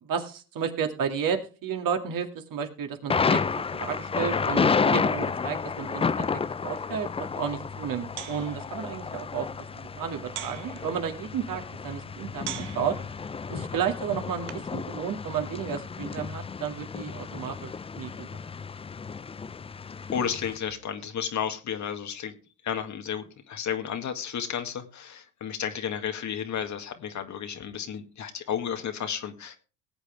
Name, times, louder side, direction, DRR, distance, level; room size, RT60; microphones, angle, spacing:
voice 1, 0.0-9.5 9.8-13.0 13.5-18.3, right 7 dB, 50° right, 4 dB, 2.4 m, -32 dB
Thunder, 3.1-20.6, left 5 dB, 15° left, 0.5 m, -31 dB
sound 1, 7.2-14.8, right 13 dB, 80° right, 1.2 m, -45 dB
voice 2, 20.1-22.3 22.6-29.6, left 8 dB, 40° left, 7 dB, 1.9 m, -32 dB
18.5 x 8.3 x 3.4 m, 0.34 s
hypercardioid pair, 75°, 43 cm